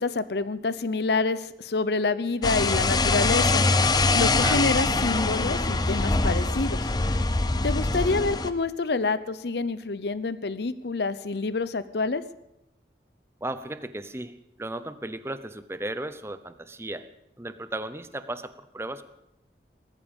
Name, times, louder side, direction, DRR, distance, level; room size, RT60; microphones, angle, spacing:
voice 1, 0.0-3.6 4.1-6.8 7.6-12.2, left 3 dB, 70° left, 15 dB, 0.7 m, -27 dB
sound 1, 2.4-8.5, left 3 dB, 25° left, 0.6 m, -23 dB
voice 2, 13.4-17.1 17.4-19.0, right 2 dB, 15° right, 12 dB, 0.7 m, -35 dB
19.5 x 13.5 x 5.3 m, 0.87 s
head